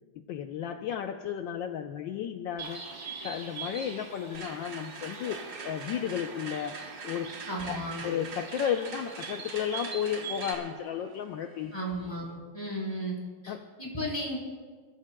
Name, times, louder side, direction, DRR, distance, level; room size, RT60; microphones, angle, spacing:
voice 1, 0.2-2.8 3.2-6.8 7.0-7.3 7.7-11.7 13.5-13.7, left 9 dB, 75° left, 5 dB, 1.3 m, -33 dB
Bird, 2.6-10.5, right 4 dB, 40° right, 1.5 m, -43 dB
sound 1, 4.3-12.3, right 4 dB, 55° right, 1.6 m, -44 dB
voice 2, 7.5-8.0 11.7-12.3 12.5-13.2 13.4-13.5 13.8-14.4, right 1 dB, 10° left, -5 dB, 4.3 m, -34 dB
28.5 x 14.5 x 2.2 m, 1.5 s
omnidirectional pair, 2.2 m